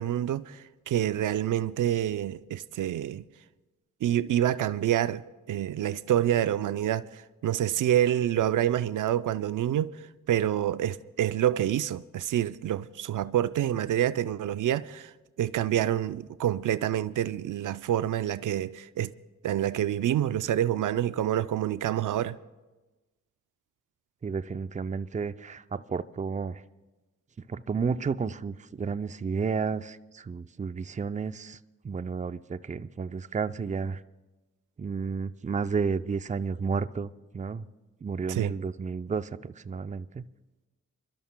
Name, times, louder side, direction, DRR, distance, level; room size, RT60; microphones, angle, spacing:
voice 1, 0.0-3.2 4.0-5.2 5.5-9.9 10.3-15.1 15.4-19.1 19.4-22.4 38.3-38.6, right 11 dB, 75° right, 0.5 m, -27 dB
voice 2, 24.2-26.6 27.4-31.6 31.8-34.0 34.8-37.7 38.0-40.3, right 5 dB, 25° right, 0.5 m, -32 dB
29.5 x 12.5 x 2.2 m
cardioid pair, 55°, 31 cm